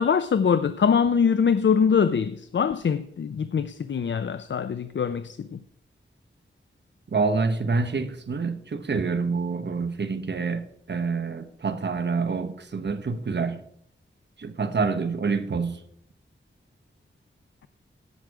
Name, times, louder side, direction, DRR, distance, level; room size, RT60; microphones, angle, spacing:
voice 1, 0.0-5.6, left 6 dB, 65° left, 0.5 m, -23 dB
voice 2, 7.1-13.6 14.4-15.8, right 4 dB, 60° right, 1.0 m, -27 dB
16.5 x 6.5 x 4.8 m
wide cardioid pair, 80°, 20 cm